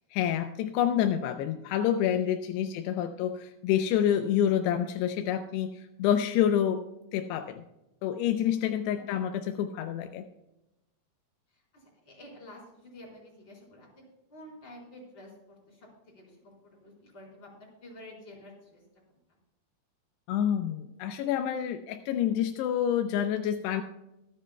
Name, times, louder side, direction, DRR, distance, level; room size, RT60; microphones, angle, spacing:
voice 1, 0.2-6.8 7.1-7.6 8.0-10.3 20.3-23.8, left 10 dB, 90° left, 7 dB, 2.8 m, -28 dB
voice 2, 2.7-3.1 8.9-9.6 11.5-18.8, left 1 dB, 25° left, -3 dB, 4.7 m, -51 dB
24.0 x 10.0 x 2.2 m, 0.91 s
omnidirectional pair, 4.7 m